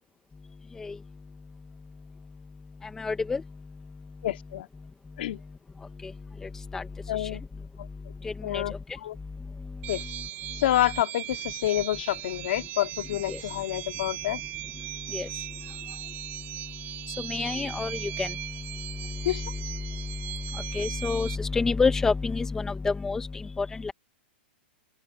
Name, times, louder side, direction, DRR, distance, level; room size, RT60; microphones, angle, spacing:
voice 1, 3.0-3.4 6.7-6.8 8.5-8.6 13.3-13.4 15.1-15.3 17.3-18.3 20.7-23.3 23.6-23.9, left 4 dB, 10° left, 1.2 m, -27 dB
voice 2, 4.2-4.7 5.2-5.4 7.1-7.4 8.4-9.2 9.9-10.0 10.6-14.4 19.2-19.4, left 13 dB, 65° left, 2.7 m, -28 dB
sound 1, 9.8-21.4, right 15 dB, 30° right, 4.6 m, -38 dB
open air
hypercardioid pair, 155°, 6 cm